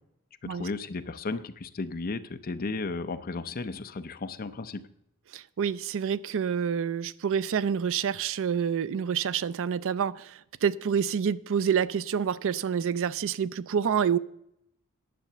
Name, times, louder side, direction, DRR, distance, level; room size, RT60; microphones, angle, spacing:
voice 1, 0.5-4.9, left 3 dB, 40° left, 11 dB, 0.6 m, -34 dB
voice 2, 5.3-14.2, right 7 dB, 60° right, 17 dB, 0.4 m, -28 dB
10.0 x 7.0 x 6.7 m, 0.76 s
head